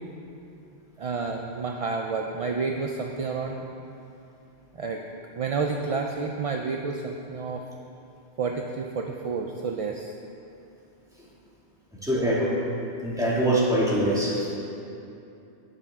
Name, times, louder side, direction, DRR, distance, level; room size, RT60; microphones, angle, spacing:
voice 1, 1.0-3.6 4.7-5.0 5.3-7.6 8.4-10.1 12.1-12.3, right 4 dB, 50° right, 2 dB, 0.4 m, -30 dB
voice 2, 12.0-12.5 13.0-14.5, right 1 dB, 5° right, -7 dB, 2.1 m, -23 dB
17.0 x 6.8 x 3.6 m, 2.7 s
omnidirectional pair, 1.1 m